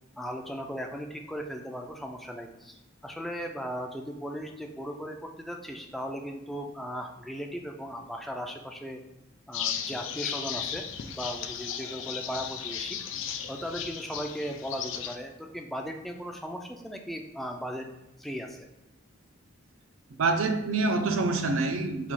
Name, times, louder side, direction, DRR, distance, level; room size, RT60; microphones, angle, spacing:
voice 1, 0.2-9.0 9.5-13.0 13.5-17.9 18.2-18.7, equal, ahead, 2 dB, 0.3 m, -37 dB
sound 1, 9.5-15.2, left 8 dB, 70° left, 0.4 m, -35 dB
voice 2, 20.2-22.1, right 3 dB, 90° right, 7 dB, 0.5 m, -26 dB
4.0 x 2.3 x 4.4 m, 0.93 s
head